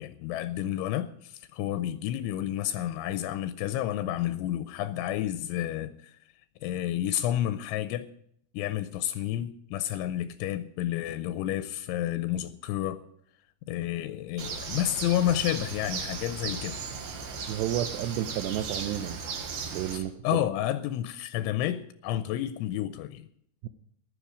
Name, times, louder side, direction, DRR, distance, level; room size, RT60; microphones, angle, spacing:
voice 1, 0.0-6.2 6.6-8.1 8.5-13.0 13.7-16.8 19.9-23.3, left 12 dB, 85° left, 3.0 m, -30 dB
Bird, 14.4-20.0, right 5 dB, 60° right, 3.3 m, -36 dB
voice 2, 17.5-19.2 19.7-20.4 23.6-23.7, right 12 dB, 85° right, 2.4 m, -31 dB
15.5 x 12.0 x 5.0 m
omnidirectional pair, 5.6 m